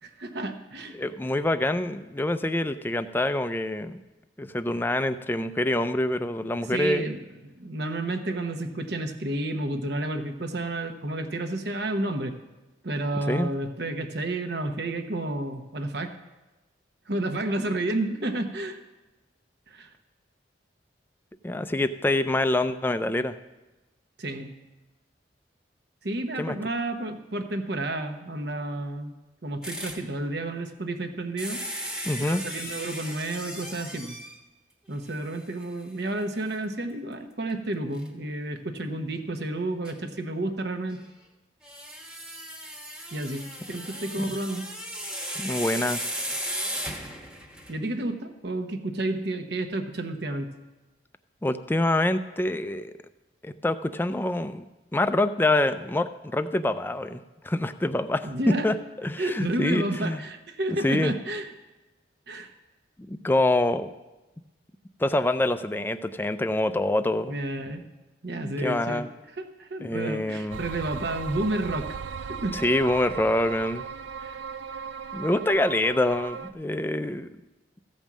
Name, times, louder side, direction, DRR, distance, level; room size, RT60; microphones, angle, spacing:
voice 1, 0.0-1.0 6.7-7.2 7.4-12.3 12.8-16.2 17.1-18.8 19.7-19.9 24.2-24.5 26.0-29.1 29.4-31.6 32.3-34.2 34.9-41.0 43.1-44.7 47.7-50.5 58.2-58.7 59.2-61.5 62.3-62.5 67.3-67.8 68.2-69.1 69.3-72.0 72.3-72.6 74.2-74.4, right 2 dB, 60° right, 7 dB, 1.0 m, -31 dB
voice 2, 0.9-4.0 4.4-7.1 13.3-13.5 21.4-23.3 26.4-26.6 32.1-32.4 44.2-44.3 45.4-46.0 51.4-52.9 53.4-54.6 54.9-58.8 59.0-60.2 60.8-61.1 63.1-63.9 65.0-67.4 68.4-69.1 69.8-70.6 72.5-73.9 75.1-77.3, left 1 dB, 10° left, 11 dB, 0.4 m, -26 dB
sound 1, 29.6-30.1 31.4-34.4 35.1-35.2 35.6-35.7 38.0-38.1 39.9-40.0 41.6-47.8, equal, 5° right, 1.1 m, -36 dB
sound 2, 70.5-76.5, right 6 dB, 80° right, 0.4 m, -37 dB
15.0 x 5.3 x 7.3 m, 1.1 s
head